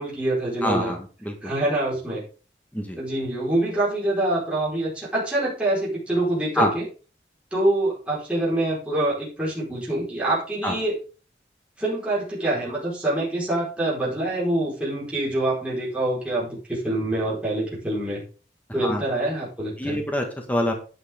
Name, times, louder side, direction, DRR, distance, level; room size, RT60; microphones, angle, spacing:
voice 1, 0.0-0.9 1.4-2.2 3.0-6.8 7.5-11.0 11.8-18.2 18.7-20.0, right 1 dB, 5° right, -7 dB, 4.5 m, -25 dB
voice 2, 0.6-1.5 2.7-3.0 6.6-6.7 10.6-10.7 18.8-19.0 19.8-20.7, equal, 10° left, 2 dB, 1.6 m, -25 dB
11.5 x 9.6 x 3.7 m, 0.36 s
head